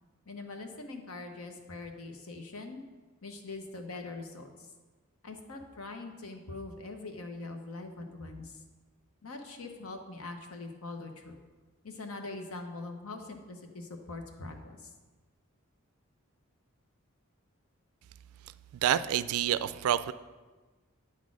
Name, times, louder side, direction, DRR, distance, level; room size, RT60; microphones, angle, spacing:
voice 1, 0.3-2.8 3.2-4.5 5.2-8.5 9.2-11.4 11.8-14.9, left 3 dB, 80° left, 4 dB, 1.0 m, -42 dB
voice 2, 18.8-20.1, right 10 dB, 80° right, 15 dB, 0.3 m, -28 dB
8.7 x 4.2 x 6.1 m, 1.3 s
head